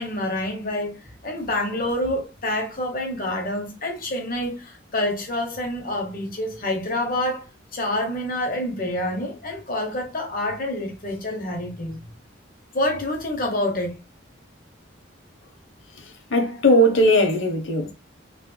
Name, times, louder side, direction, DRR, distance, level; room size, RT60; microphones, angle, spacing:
voice 1, 0.0-12.0 12.7-14.0, left 1 dB, 45° left, 0.9 m, -27 dB
voice 2, 16.3-17.9, equal, 70° left, 0.8 m, -18 dB
3.1 x 3.0 x 2.2 m
head